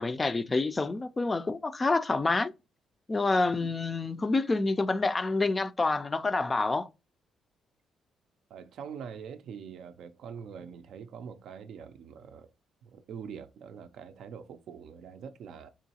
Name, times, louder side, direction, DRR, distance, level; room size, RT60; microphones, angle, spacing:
voice 1, 0.0-2.5 3.1-6.9, left 3 dB, 25° left, 0.3 m, -27 dB
voice 2, 8.5-12.5 12.8-15.7, right 7 dB, 75° right, 0.4 m, -44 dB
3.7 x 3.0 x 2.7 m
cardioid pair, 90°, 0 cm